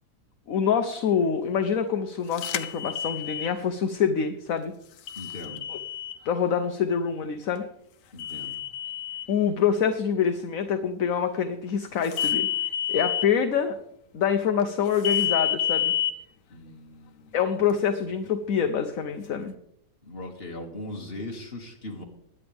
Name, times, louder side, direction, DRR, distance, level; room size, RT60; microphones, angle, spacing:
voice 1, 0.5-4.7 5.7-5.8 6.2-7.6 9.3-12.5 12.9-13.8 14.1-15.9 17.3-19.5, left 7 dB, 60° left, 7 dB, 1.2 m, -26 dB
sound 1, 2.4-3.5 5.1-6.2 8.2-9.3 12.1-13.3 15.0-16.1, left 11 dB, 80° left, 1.4 m, -28 dB
voice 2, 5.2-5.7 8.1-8.6 16.5-17.4 20.0-22.0, left 1 dB, 35° left, 0 dB, 2.5 m, -39 dB
21.5 x 9.9 x 3.5 m, 0.74 s
omnidirectional pair, 1.8 m